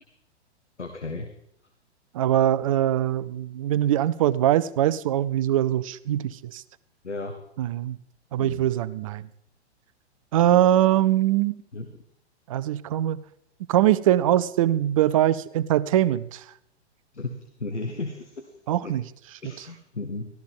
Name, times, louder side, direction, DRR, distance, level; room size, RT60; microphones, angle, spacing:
voice 1, 0.8-1.3 7.0-7.4 8.4-8.6 11.7-11.9 17.1-18.5 18.8-18.9 19.4-20.3, left 3 dB, 85° left, 4 dB, 1.3 m, -34 dB
voice 2, 2.1-6.6 7.6-8.0 8.3-9.3 10.3-11.6 12.5-13.2 13.7-16.4 18.7-19.0, right 12 dB, 30° right, 17 dB, 0.4 m, -22 dB
13.0 x 13.0 x 3.6 m, 0.76 s
figure-of-eight pair, 110°, 34 cm